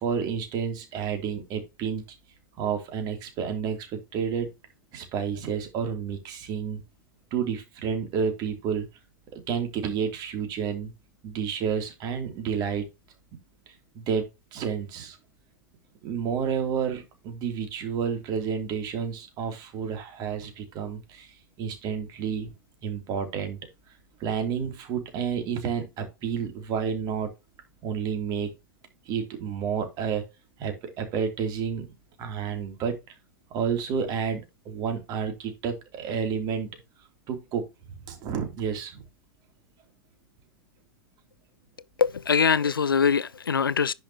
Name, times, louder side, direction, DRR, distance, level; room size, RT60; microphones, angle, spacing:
voice 1, 0.0-2.0 2.6-4.5 4.9-6.8 7.3-8.9 9.3-10.9 11.2-12.9 13.9-15.2 16.0-22.5 22.8-23.6 24.2-27.3 27.8-28.5 29.0-30.3 30.6-31.9 32.2-33.0 33.5-34.4 34.6-36.7 37.3-37.6 37.9-39.0, right 7 dB, 35° right, 3.2 m, -30 dB
voice 2, 42.0-43.9, left 6 dB, 75° left, 0.5 m, -23 dB
10.5 x 5.9 x 3.0 m
figure-of-eight pair, 95°, 12 cm